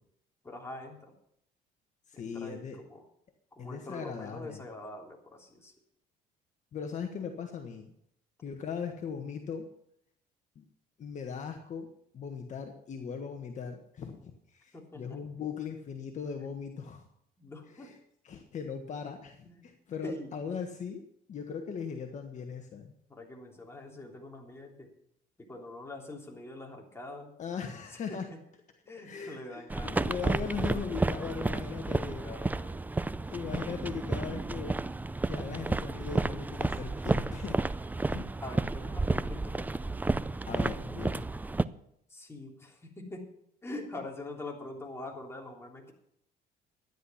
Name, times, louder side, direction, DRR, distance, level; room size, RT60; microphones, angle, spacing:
voice 1, 0.4-1.2 2.1-3.0 3.5-5.7 8.4-8.5 14.7-15.2 17.4-17.9 19.4-19.7 20.0-20.4 23.1-24.9 25.4-27.3 27.9-28.4 28.8-30.0 31.8-32.9 38.4-39.7 42.1-43.3 43.6-45.9, left 2 dB, 15° left, 0 dB, 3.2 m, -44 dB
voice 2, 2.1-2.8 3.6-4.6 6.7-7.9 8.4-9.6 10.5-10.6 11.0-11.9 12.1-17.1 17.7-18.0 18.2-21.0 21.3-22.9 27.4-28.3 29.0-32.6 33.3-34.8 35.2-37.6 38.1-38.3 40.5-41.2, left 6 dB, 45° left, 4 dB, 1.5 m, -39 dB
sound 1, 29.7-41.6, right 2 dB, 10° right, 0.4 m, -31 dB
13.0 x 10.0 x 5.8 m, 0.72 s
cardioid pair, 110°, 17 cm